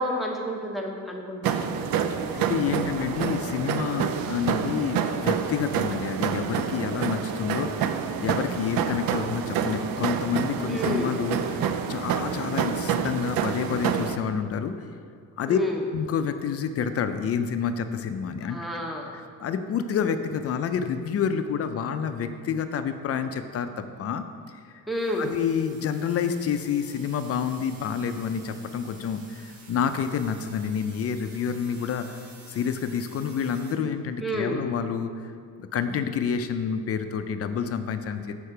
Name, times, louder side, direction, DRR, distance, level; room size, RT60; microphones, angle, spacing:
voice 1, 0.0-1.7 10.7-11.1 15.5-15.8 18.4-19.2 24.9-25.3 34.2-34.6, equal, ahead, -1 dB, 0.6 m, -30 dB
sound 1, 1.4-14.2, right 7 dB, 75° right, 0.5 m, -28 dB
voice 2, 2.3-14.8 15.4-15.6 15.9-18.6 19.4-23.7 24.0-24.2 25.2-35.3 35.6-38.3, left 7 dB, 45° left, 9 dB, 0.4 m, -28 dB
sound 2, 24.9-33.7, right 3 dB, 50° right, 1.2 m, -51 dB
6.6 x 4.4 x 5.6 m, 2.2 s
cardioid pair, 155°, 35 cm